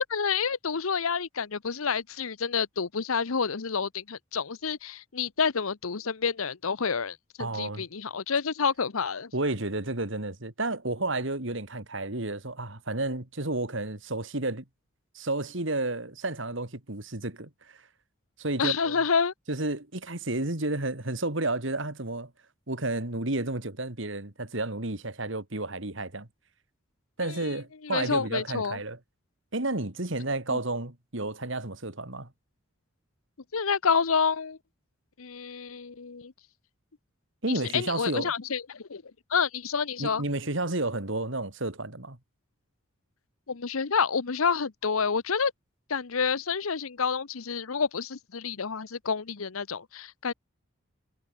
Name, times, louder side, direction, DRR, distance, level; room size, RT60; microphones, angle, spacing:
voice 1, 0.1-9.3 18.6-19.3 27.2-27.6 27.8-28.8 33.5-34.6 35.2-36.3 37.5-39.0 39.3-40.2 43.5-45.5 45.9-50.3, left 5 dB, 80° left, 0.9 m, -29 dB
voice 2, 7.4-7.8 9.3-14.6 15.1-17.8 18.4-18.9 19.5-22.3 22.7-26.3 27.2-29.0 29.5-32.3 37.4-38.3 40.0-42.2, right 2 dB, 60° right, 2.6 m, -31 dB
head